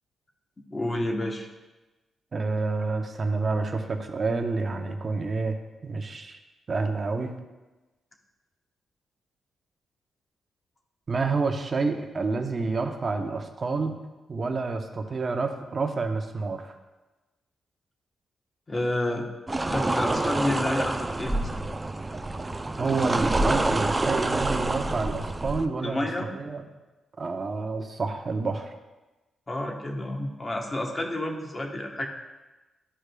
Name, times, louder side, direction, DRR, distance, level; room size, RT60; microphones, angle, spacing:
voice 1, 0.7-1.5 18.7-19.2 19.7-21.5 25.8-26.3 29.5-32.1, left 1 dB, 25° left, 2 dB, 1.0 m, -29 dB
voice 2, 2.3-5.6 5.8-6.4 6.7-7.3 11.1-14.0 14.3-16.7 22.8-26.1 26.3-26.6 27.2-28.7, right 4 dB, 40° right, 5 dB, 0.8 m, -28 dB
sound 1, 19.5-25.7, right 2 dB, 20° right, 0.4 m, -27 dB
12.5 x 4.8 x 2.3 m, 1.1 s
cardioid pair, 95°, 0 cm